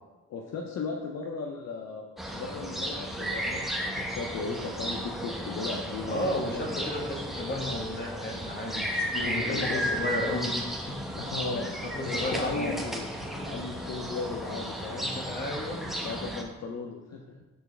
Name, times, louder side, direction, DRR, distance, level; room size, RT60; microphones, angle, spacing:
voice 1, 0.3-2.0 2.3-7.0 9.4-9.8 11.2-11.7 12.1-13.1 13.4-15.1 16.0-17.4, left 4 dB, 60° left, 1 dB, 0.7 m, -36 dB
sound 1, 2.2-16.4, equal, ahead, 0.8 m, -34 dB
voice 2, 6.1-10.5 11.8-12.8 13.4-13.5 14.9-15.8, left 2 dB, 35° left, 0 dB, 1.4 m, -33 dB
6.6 x 4.6 x 3.3 m, 1.1 s
cardioid pair, 90°, 30 cm